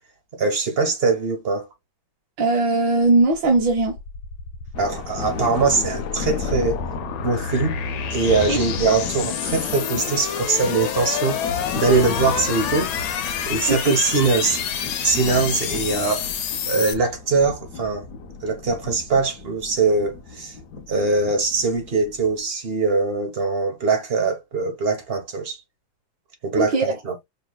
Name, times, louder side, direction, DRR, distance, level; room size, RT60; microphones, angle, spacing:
voice 1, 0.4-1.7 4.8-6.8 7.2-7.8 8.1-11.4 11.8-12.9 13.5-14.6 15.0-16.3 16.7-18.1 18.4-20.5 20.9-25.6 26.4-27.2, right 4 dB, 40° right, 1.0 m, -22 dB
voice 2, 2.4-4.0 8.5-8.6 13.7-13.9 26.6-26.8, right 2 dB, 70° right, 1.8 m, -19 dB
sound 1, 3.2-16.9, left 8 dB, 85° left, 1.6 m, -29 dB
Thunder, 4.7-22.4, left 4 dB, 65° left, 1.1 m, -34 dB
5.5 x 3.2 x 2.2 m
omnidirectional pair, 2.1 m